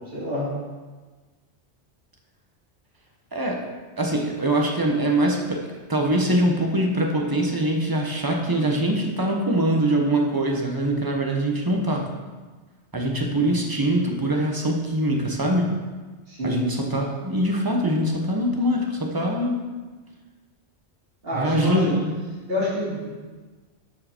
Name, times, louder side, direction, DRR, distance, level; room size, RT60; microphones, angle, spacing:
voice 1, 0.1-0.5 16.3-16.6 21.2-21.9 22.5-23.1, left 1 dB, 55° right, -9 dB, 3.2 m, -27 dB
voice 2, 3.3-3.7 4.0-12.1 12.9-15.8 16.4-19.6 21.3-22.0, right 1 dB, 20° right, 1 dB, 1.1 m, -23 dB
13.0 x 4.8 x 4.5 m, 1.3 s
omnidirectional pair, 1.2 m